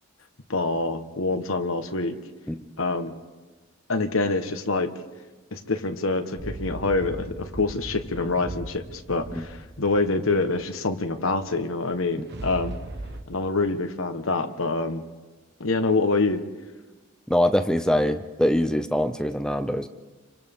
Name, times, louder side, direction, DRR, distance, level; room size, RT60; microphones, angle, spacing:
voice 1, 0.5-2.1 2.8-3.1 3.9-4.9 5.5-12.8 13.3-15.0 15.6-16.4, left 3 dB, 70° left, 7 dB, 1.3 m, -26 dB
sound 1, 6.4-11.0 11.9-13.2, right 1 dB, 50° right, 1.2 m, -38 dB
voice 2, 17.3-19.9, equal, 5° left, 8 dB, 0.6 m, -23 dB
29.5 x 24.5 x 3.7 m, 1.2 s
head